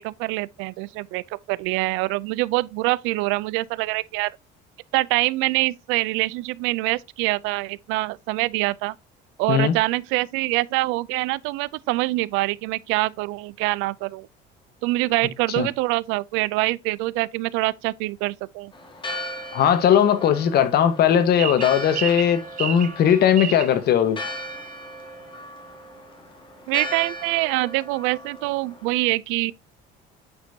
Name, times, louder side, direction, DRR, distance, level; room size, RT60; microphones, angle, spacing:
voice 1, 0.0-4.3 4.9-9.0 9.4-14.3 14.8-18.7 26.7-29.5, right 21 dB, 85° right, 0.4 m, -25 dB
Church bell, 18.7-28.9, left 1 dB, 25° left, 2.2 m, -37 dB
voice 2, 19.5-24.2, left 9 dB, 55° left, 1.3 m, -19 dB
sound 1, 21.4-23.7, right 11 dB, 45° right, 0.7 m, -30 dB
8.7 x 5.2 x 2.7 m
cardioid pair, 120°, 20 cm